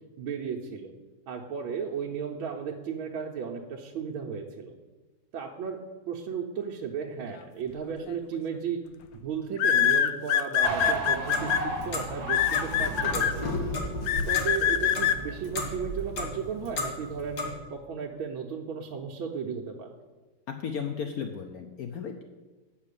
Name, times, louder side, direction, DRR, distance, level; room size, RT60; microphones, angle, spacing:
voice 1, 0.2-0.9 1.3-4.8 5.3-5.8 6.1-8.8 9.2-13.7 14.3-17.4 17.7-19.9, right 6 dB, 75° right, -1 dB, 1.5 m, -35 dB
sound 1, 8.1-8.4 9.6-11.6 12.3-13.3 14.1-15.2, left 9 dB, 75° left, 1.1 m, -23 dB
sound 2, 10.6-16.1, right 3 dB, 50° right, 1.5 m, -36 dB
Clock, 11.1-17.5, left 2 dB, 55° left, 1.9 m, -34 dB
voice 2, 20.6-22.2, left 6 dB, 90° left, 5 dB, 0.8 m, -34 dB
8.4 x 5.7 x 6.7 m, 1.2 s
omnidirectional pair, 2.3 m